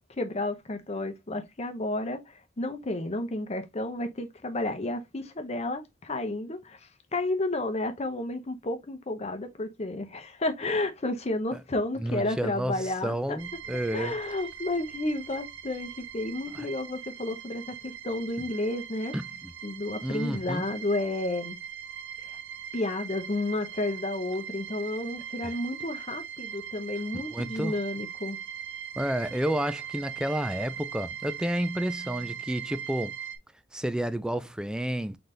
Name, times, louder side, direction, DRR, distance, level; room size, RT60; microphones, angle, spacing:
voice 1, 0.2-6.8 7.1-13.4 13.9-19.1 19.6-21.6 22.7-28.4, left 2 dB, 35° left, 0.8 m, -31 dB
voice 2, 12.0-14.1 16.5-16.7 18.4-18.5 19.1-19.5 20.0-20.7 25.4-25.5 27.3-27.8 29.0-33.2 33.7-35.2, right 1 dB, 5° right, 0.3 m, -31 dB
sound 1, 13.4-33.4, right 8 dB, 85° right, 0.8 m, -40 dB
3.9 x 3.9 x 3.2 m
head